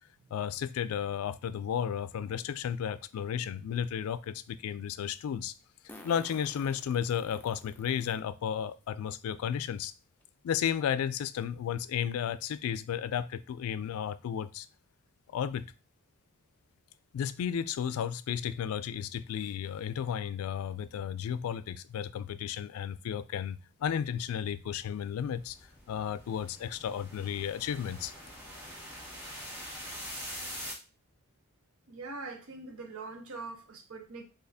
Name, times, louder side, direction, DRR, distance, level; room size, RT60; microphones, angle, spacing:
voice 1, 0.3-5.5 6.0-9.9 10.4-14.7 15.3-15.7 17.1-25.6 25.9-28.1, left 8 dB, 85° left, 15 dB, 0.3 m, -33 dB
Fart, 3.2-3.3 5.9-8.2 8.8-8.9 10.2-10.3 10.7-10.8 11.2-11.4, left 1 dB, 10° left, 0.4 m, -52 dB
sound 1, 24.8-30.7, equal, 10° right, 1.6 m, -44 dB
voice 2, 31.9-34.2, right 3 dB, 80° right, 6 dB, 0.7 m, -42 dB
4.0 x 2.8 x 2.7 m, 0.32 s
head